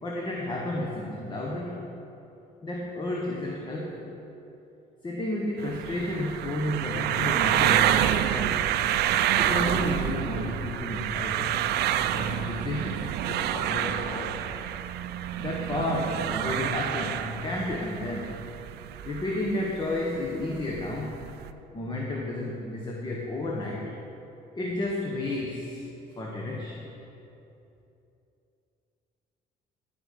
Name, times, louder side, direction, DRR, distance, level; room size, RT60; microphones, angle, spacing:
voice 1, 0.0-1.9 2.6-4.1 5.0-8.7 9.3-11.7 12.1-14.5 15.4-18.4 19.0-21.2 21.7-23.9 24.5-25.8 26.2-26.8, left 1 dB, 25° left, -2 dB, 1.3 m, -32 dB
sound 1, 5.6-21.5, right 11 dB, 75° right, 0.5 m, -28 dB
14.5 x 5.3 x 6.7 m, 2.8 s
cardioid pair, 110°, 17 cm